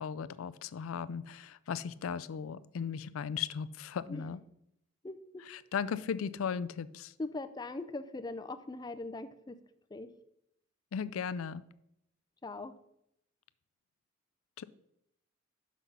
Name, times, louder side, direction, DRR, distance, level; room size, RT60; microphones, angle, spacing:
voice 1, 0.0-4.4 5.5-7.1 10.9-11.6 14.6-14.7, left 7 dB, 85° left, 16 dB, 0.4 m, -37 dB
voice 2, 5.0-5.4 7.2-9.6 9.9-10.1 12.4-12.7, left 2 dB, 20° left, 10 dB, 0.4 m, -41 dB
6.1 x 5.8 x 5.4 m, 0.80 s
head